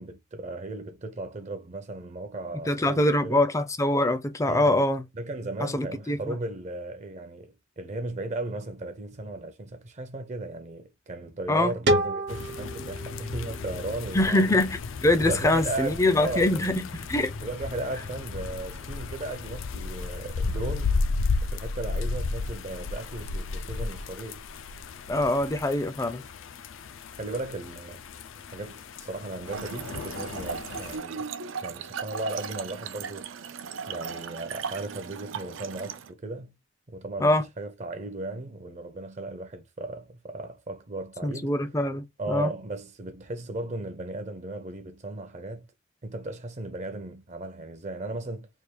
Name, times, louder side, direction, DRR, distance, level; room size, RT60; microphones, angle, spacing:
voice 1, 0.0-3.5 4.4-4.8 5.1-14.6 15.2-16.6 17.4-21.0 21.4-24.4 27.2-28.0 28.5-31.3 31.6-33.3 33.9-36.5 36.9-41.6 42.2-45.7 46.0-48.5, right 2 dB, 35° right, 0.6 m, -36 dB
voice 2, 2.7-5.0 5.6-6.3 11.5-11.7 14.1-17.3 25.1-26.2 37.2-37.4 41.2-42.5, left 1 dB, 15° left, 0.4 m, -24 dB
sound 1, 11.9-14.7, right 1 dB, 60° right, 0.8 m, -29 dB
sound 2, 12.3-31.0, left 4 dB, 80° left, 0.5 m, -34 dB
Trickle dribble / Fill (with liquid), 29.4-36.1, right 6 dB, 80° right, 0.5 m, -37 dB
3.4 x 2.3 x 4.4 m
head